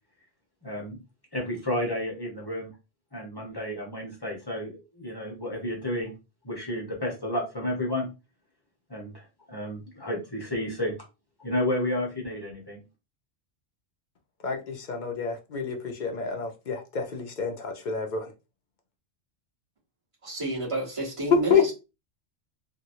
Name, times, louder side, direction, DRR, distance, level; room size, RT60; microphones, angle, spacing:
voice 1, 0.6-1.0 1.3-2.7 3.1-6.1 6.4-8.1 8.9-10.9 11.4-12.8, left 1 dB, 20° left, 1.0 m, -31 dB
voice 2, 14.4-18.3 21.3-21.7, left 6 dB, 50° left, 0.6 m, -27 dB
voice 3, 20.2-21.7, right 2 dB, 30° right, 1.3 m, -30 dB
2.9 x 2.7 x 2.6 m
omnidirectional pair, 1.2 m